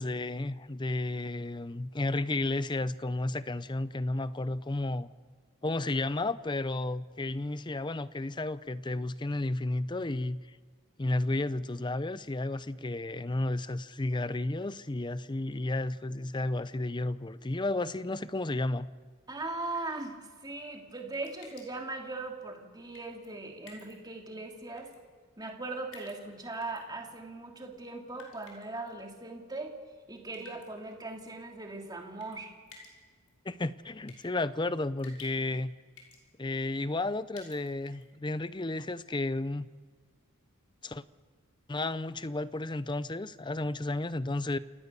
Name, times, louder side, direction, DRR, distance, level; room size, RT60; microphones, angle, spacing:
voice 1, 0.0-5.1 5.6-10.4 11.0-18.9 33.5-35.7 36.4-39.7 40.8-41.0 41.7-44.6, left 2 dB, 20° left, 0.6 m, -32 dB
voice 2, 19.3-24.9 25.4-29.8 30.1-32.5, right 2 dB, 20° right, 2.8 m, -39 dB
sound 1, 21.1-21.9 22.9-23.3 23.7-23.9 24.8-25.0 25.9-26.8 28.1-28.9 30.3-30.7 32.2-32.4 32.7-32.9 33.3-33.4 34.1-34.2 35.0-35.6 36.0-36.2 37.3-38.0, left 3 dB, 80° left, 5.8 m, -52 dB
28.5 x 17.5 x 6.8 m
head